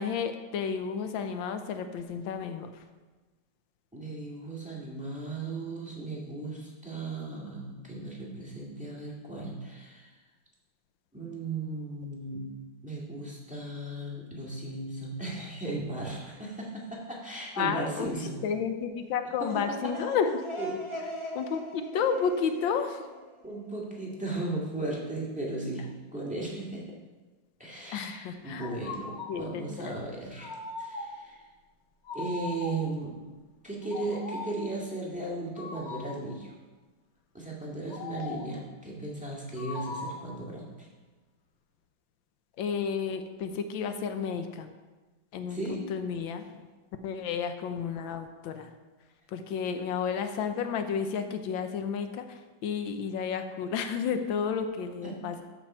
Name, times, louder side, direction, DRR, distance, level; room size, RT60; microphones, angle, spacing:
voice 1, 0.0-2.7 17.6-18.1 18.4-20.3 21.3-23.0 27.9-28.7 29.3-29.9 42.6-44.7 45.3-46.6 47.0-48.7 49.3-52.2 52.6-55.4, left 6 dB, 85° left, 8 dB, 1.5 m, -31 dB
voice 2, 3.9-10.1 11.1-12.5 12.8-18.4 19.4-19.9 20.6-20.8 23.4-26.9 27.6-30.5 30.8-31.4 32.1-33.2 33.6-36.5 37.3-40.9 45.5-45.9 55.0-55.2, right 2 dB, 5° right, -4 dB, 1.9 m, -36 dB
sound 1, 19.2-24.0, equal, 20° left, 1.0 m, -41 dB
sound 2, 28.6-29.4 30.4-31.3 32.1-33.0 33.8-34.7 35.6-36.3 37.9-38.6 39.6-40.3, left 3 dB, 55° left, 1.3 m, -39 dB
13.5 x 6.0 x 4.4 m, 1.2 s
omnidirectional pair, 2.1 m